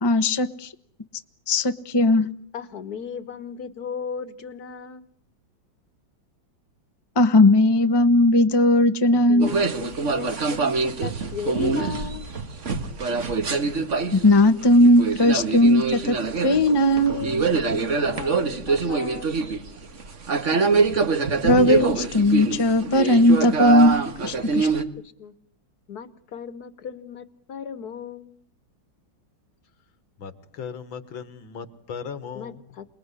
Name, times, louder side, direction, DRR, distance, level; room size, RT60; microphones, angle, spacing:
voice 1, 0.0-0.7 1.5-2.3 7.1-9.5 14.1-16.2 16.4-17.1 21.4-24.0 24.2-24.7, left 1 dB, 15° left, 10 dB, 0.9 m, -18 dB
voice 2, 2.5-5.1 9.1-12.3 16.8-19.3 24.5-24.9 25.2-25.3 25.9-28.4 32.3-32.9, left 6 dB, 50° left, 14 dB, 1.9 m, -36 dB
sound 1, 9.4-24.8, right 4 dB, 40° right, 1.8 m, -24 dB
voice 3, 30.2-32.6, left 6 dB, 75° left, 13 dB, 2.4 m, -37 dB
28.0 x 21.0 x 10.0 m, 0.62 s
omnidirectional pair, 2.2 m